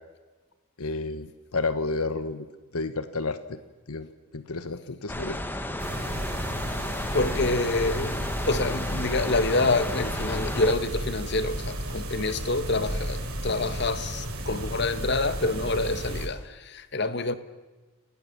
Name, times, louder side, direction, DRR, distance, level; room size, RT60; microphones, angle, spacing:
voice 1, 0.8-2.5 2.7-3.6 3.9-5.4, left 3 dB, 85° left, 1.1 m, -31 dB
sound 1, 5.1-10.7, left 1 dB, 10° left, 1.2 m, -33 dB
sound 2, 5.8-16.3, right 1 dB, 85° right, 5.6 m, -33 dB
voice 2, 7.1-17.3, left 2 dB, 50° left, 1.2 m, -27 dB
28.0 x 18.0 x 7.3 m
head